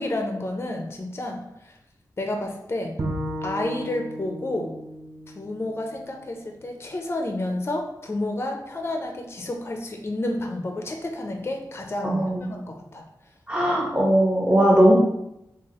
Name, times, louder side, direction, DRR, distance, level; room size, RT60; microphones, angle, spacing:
voice 1, 0.0-1.8 2.2-3.0 3.4-4.7 5.3-13.1, left 1 dB, 35° left, 3 dB, 0.5 m, -30 dB
Bowed string instrument, 3.0-6.3, right 1 dB, 40° right, 0.5 m, -34 dB
voice 2, 12.0-12.5 13.5-14.9, right 1 dB, 15° right, -5 dB, 1.1 m, -19 dB
3.8 x 2.7 x 2.9 m, 0.82 s
wide cardioid pair, 110°, 7 cm